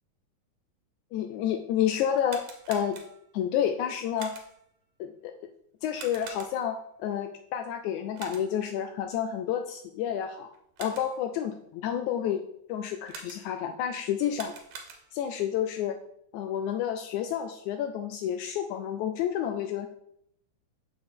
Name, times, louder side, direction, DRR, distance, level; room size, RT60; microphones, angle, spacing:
voice 1, 1.1-3.0 3.3-4.3 5.0-5.3 5.8-10.5 10.8-12.4 12.7-14.5 15.1-16.0 16.3-19.9, left 9 dB, 80° left, 6 dB, 1.8 m, -30 dB
sound 1, 2.1-3.4 4.2-4.7 5.9-6.8 8.1-8.7 10.5-11.3 13.1-13.7 14.2-15.3, right 5 dB, 70° right, 2.2 m, -45 dB
6.8 x 6.0 x 3.7 m, 0.73 s
omnidirectional pair, 3.6 m